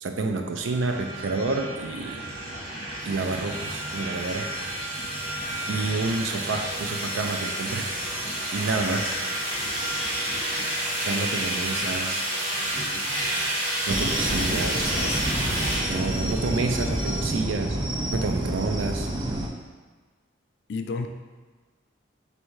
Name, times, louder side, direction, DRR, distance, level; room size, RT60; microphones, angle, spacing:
voice 1, 0.0-2.2 3.0-4.5 5.7-7.9 8.5-9.1 11.0-12.2 13.9-14.9 15.9-17.8 18.1-19.1, right 3 dB, 90° right, 4 dB, 0.4 m, -29 dB
sound 1, 0.6-17.4, right 1 dB, 45° right, 1.2 m, -30 dB
sound 2, 13.9-19.5, right 1 dB, 25° right, 0.3 m, -28 dB
voice 2, 14.2-15.2 17.4-17.5 20.7-21.1, left 4 dB, 60° left, 6 dB, 0.3 m, -34 dB
3.4 x 2.7 x 4.5 m, 1.4 s
head